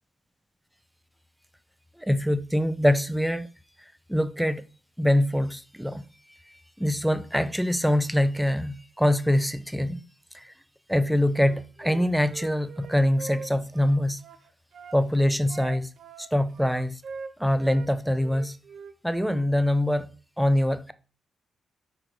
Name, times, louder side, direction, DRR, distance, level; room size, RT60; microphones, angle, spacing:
voice 1, 2.0-3.5 4.1-4.6 5.0-6.0 6.8-10.0 10.3-10.5 10.9-14.2 14.9-15.9 16.2-17.0 17.4-18.6 19.0-20.1 20.4-20.9, left 1 dB, ahead, 0.7 m, -24 dB
Wind instrument woodwind instrument, 11.3-15.0 15.5-17.9 18.2-19.5, right 5 dB, 60° right, 0.6 m, -43 dB
5.0 x 4.7 x 6.1 m
cardioid pair, 75°, 0 cm